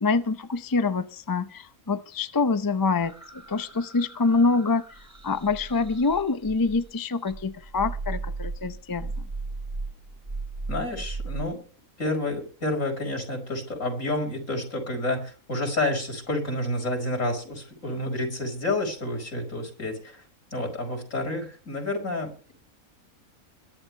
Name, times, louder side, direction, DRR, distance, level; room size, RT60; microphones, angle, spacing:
voice 1, 0.0-4.8 5.2-9.1, left 4 dB, 30° left, 11 dB, 0.4 m, -25 dB
sound 1, 3.0-6.9 7.3-11.4, right 3 dB, 25° right, 1.7 m, -36 dB
voice 2, 10.7-11.6 12.0-20.2 20.5-22.5, left 1 dB, 60° left, 1 dB, 5.4 m, -29 dB
22.0 x 11.0 x 3.3 m, 0.38 s
omnidirectional pair, 1.5 m